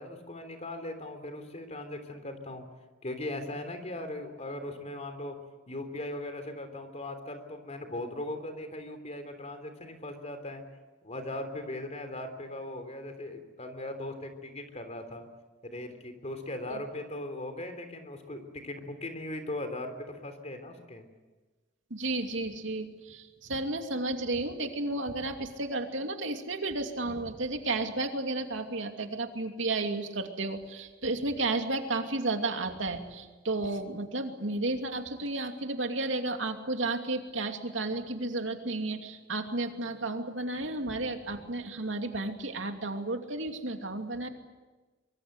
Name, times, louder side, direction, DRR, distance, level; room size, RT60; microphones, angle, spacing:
voice 1, 0.0-2.6 3.0-5.4 5.7-10.6 11.0-15.2 15.6-21.0, left 1 dB, 35° left, 7 dB, 3.4 m, -39 dB
voice 2, 21.9-44.3, right 2 dB, 75° right, 5 dB, 2.7 m, -32 dB
24.5 x 23.5 x 8.1 m, 1.2 s
head